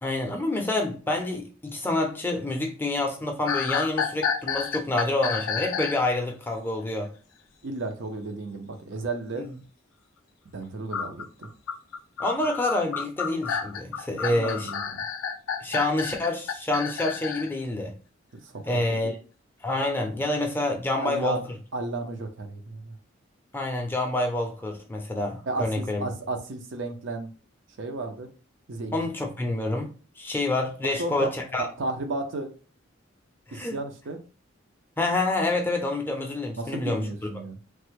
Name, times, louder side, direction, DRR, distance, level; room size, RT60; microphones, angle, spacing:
voice 1, 0.0-7.1 9.4-9.5 12.2-14.7 15.6-17.9 18.7-19.1 19.6-21.4 23.5-26.1 28.9-31.7 33.5-33.8 35.0-37.1, left 2 dB, 10° left, 0.5 m, -27 dB
sound 1, 3.5-6.1 10.9-17.5, left 6 dB, 85° left, 0.4 m, -30 dB
voice 2, 7.6-9.5 10.5-11.5 14.1-15.0 18.4-19.1 21.0-21.4 21.7-23.0 25.5-27.3 27.8-28.3 28.7-29.0 30.8-31.3 31.6-32.5 33.5-34.2 36.6-37.6, right 2 dB, 65° right, 0.6 m, -33 dB
3.2 x 2.1 x 3.1 m
head